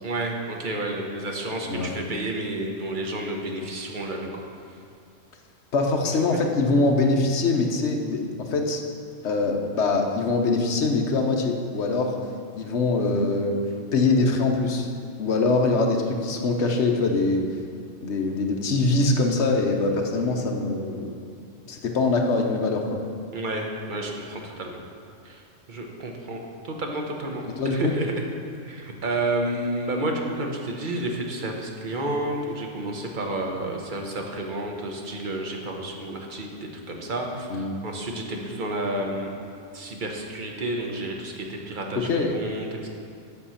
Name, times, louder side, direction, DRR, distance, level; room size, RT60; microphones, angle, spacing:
voice 1, 0.0-4.4 6.3-6.4 23.3-24.8 25.2-28.1 28.7-37.5 37.8-39.3 39.7-42.9, right 1 dB, 40° right, 1 dB, 1.1 m, -31 dB
voice 2, 5.7-8.8 9.2-12.1 12.5-13.6 13.9-14.9 15.2-17.5 18.0-21.2 21.7-23.0 27.6-27.9 37.5-37.8 42.0-42.3, left 3 dB, 65° left, 2 dB, 1.1 m, -23 dB
7.7 x 6.6 x 5.6 m, 2.5 s
omnidirectional pair, 1.3 m